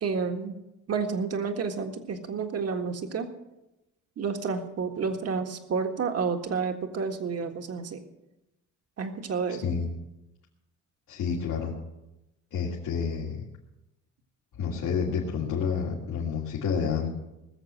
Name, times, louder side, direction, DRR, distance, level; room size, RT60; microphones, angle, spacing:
voice 1, 0.0-0.5 0.9-3.3 4.2-8.0 9.0-9.6, right 5 dB, 55° right, 6 dB, 1.7 m, -30 dB
voice 2, 11.1-11.8 12.5-13.4 14.6-17.1, left 6 dB, 90° left, -4 dB, 2.7 m, -29 dB
20.0 x 7.0 x 7.7 m, 0.95 s
cardioid pair, 90°, 30 cm